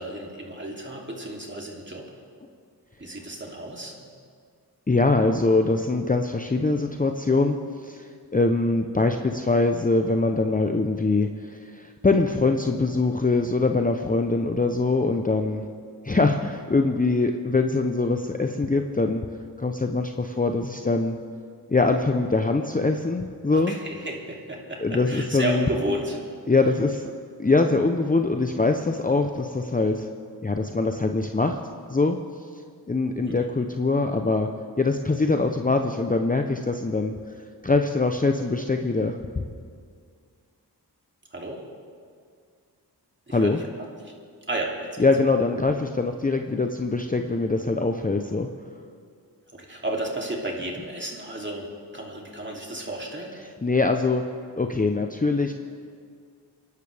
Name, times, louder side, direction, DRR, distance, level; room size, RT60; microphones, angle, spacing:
voice 1, 0.0-2.2 3.0-4.1 23.5-26.2 33.3-33.5 41.3-41.6 43.3-44.1 44.5-44.9 49.5-51.7 51.9-53.3, right 1 dB, 25° right, -1 dB, 2.9 m, -32 dB
voice 2, 4.9-15.6 16.0-19.2 19.6-21.2 21.7-23.7 24.8-25.6 26.5-27.1 27.4-30.1 30.4-31.6 31.9-32.2 32.9-34.5 34.8-37.1 37.6-39.2 43.3-43.6 45.0-48.5 53.6-54.2 54.6-55.5, left 3 dB, 20° left, 5 dB, 0.7 m, -23 dB
25.5 x 11.5 x 3.5 m, 2.1 s
cardioid pair, 55°, 41 cm